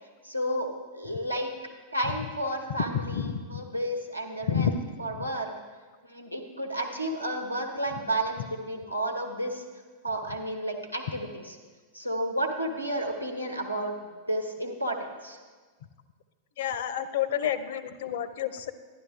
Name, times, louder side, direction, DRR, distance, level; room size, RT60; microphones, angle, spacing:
voice 1, 0.2-0.7 0.9-1.5 1.9-3.2 3.5-4.7 5.0-5.5 6.0-9.6 10.0-11.6 11.9-15.4, right 1 dB, 90° right, 2 dB, 1.1 m, -31 dB
voice 2, 2.9-3.6 4.5-4.7 16.6-18.7, left 9 dB, 55° left, 14 dB, 0.6 m, -29 dB
11.5 x 11.0 x 3.5 m, 1.4 s
figure-of-eight pair, 90°, 0 cm